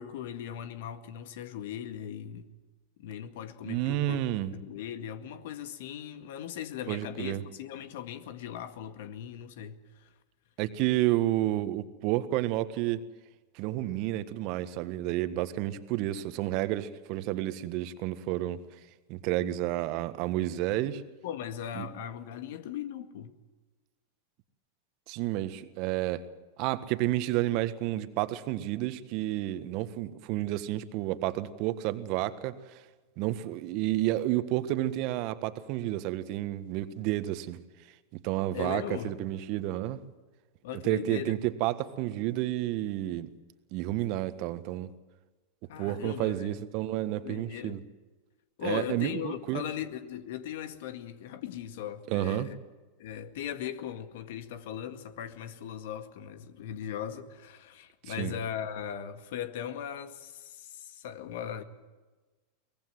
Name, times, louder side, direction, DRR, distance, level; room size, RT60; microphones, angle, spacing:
voice 1, 0.0-2.5 3.0-4.2 4.5-10.1 20.7-20.8 21.2-23.3 38.5-39.2 40.6-41.4 45.7-46.6 47.1-47.8 48.6-52.6 53.0-61.6, left 9 dB, 65° left, 2.0 m, -39 dB
voice 2, 3.6-4.5 6.9-7.4 10.6-13.0 13.5-18.6 19.1-21.0 21.7-21.9 25.1-26.3 26.6-32.6 33.2-37.6 38.1-40.0 40.8-43.3 43.7-44.9 45.8-47.8 48.6-49.6 52.1-52.5 58.1-58.3, right 15 dB, 50° right, 1.5 m, -30 dB
23.5 x 20.0 x 7.8 m
hypercardioid pair, 95°, 0 cm